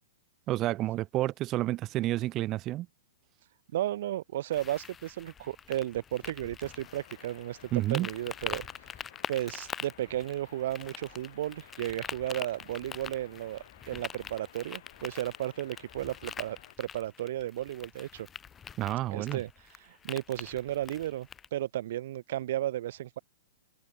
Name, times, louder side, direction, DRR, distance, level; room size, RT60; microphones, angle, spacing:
voice 1, 0.5-2.9 7.7-8.1 18.8-19.4, right 15 dB, 30° right, 0.8 m, -30 dB
voice 2, 3.7-8.7 9.3-18.3 19.1-23.2, right 13 dB, 60° right, 1.5 m, -34 dB
sound 1, 4.5-21.5, left 7 dB, 20° left, 0.7 m, -44 dB
sound 2, 6.7-16.7, left 12 dB, 65° left, 3.9 m, -56 dB
hypercardioid pair, 125°, 0 cm